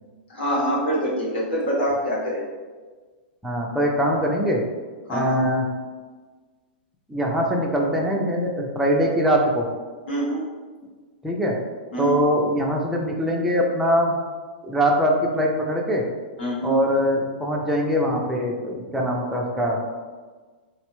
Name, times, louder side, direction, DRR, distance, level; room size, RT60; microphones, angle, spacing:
voice 1, 0.3-2.4 5.1-5.4 10.1-10.4 11.9-12.1 16.4-16.8, equal, 80° left, -5 dB, 1.1 m, -25 dB
voice 2, 3.4-4.6 5.1-5.6 7.1-9.7 11.2-11.6 12.0-14.1 14.6-16.0 16.6-19.8, equal, 5° right, -2 dB, 0.3 m, -22 dB
3.2 x 2.1 x 3.0 m, 1.4 s
hypercardioid pair, 145°, 6 cm